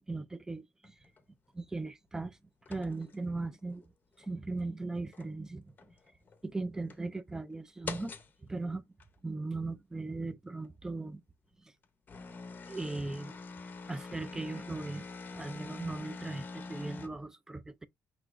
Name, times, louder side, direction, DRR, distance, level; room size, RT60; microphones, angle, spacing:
voice 1, 0.1-0.9 1.5-2.4 2.7-3.9 4.2-5.7 6.4-8.1 8.4-8.9 9.2-11.2 11.6-11.7 12.7-13.4 13.9-15.0 15.3-17.9, right 3 dB, 10° right, 0.3 m, -38 dB
sound 1, 0.8-1.2 2.6-3.8 4.2-4.3 5.0-5.4 5.8-6.4 6.9-7.0 7.9-8.3 9.0-9.1 10.6-10.7 11.8-17.1, left 4 dB, 30° left, 0.6 m, -45 dB
6.0 x 2.8 x 2.4 m
cardioid pair, 150°, 6 cm